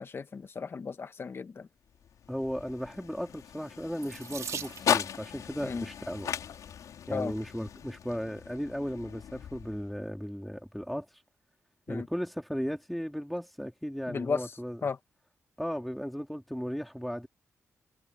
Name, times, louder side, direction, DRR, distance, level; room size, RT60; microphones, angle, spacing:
voice 1, 0.0-1.7 5.6-5.8 7.1-7.3 11.9-12.1 14.1-14.4 14.8-15.0, left 5 dB, 45° left, 1.6 m, -34 dB
sound 1, 1.9-10.1, left 8 dB, 80° left, 5.2 m, -37 dB
voice 2, 2.3-6.3 7.1-11.1 11.9-14.9 15.6-17.3, equal, ahead, 3.9 m, -36 dB
Water tap faucet / Sink (filling or washing), 4.0-5.3 6.3-6.7 7.4-7.5 7.8-7.9, right 7 dB, 65° right, 2.3 m, -41 dB
cardioid pair, 90°, 6 cm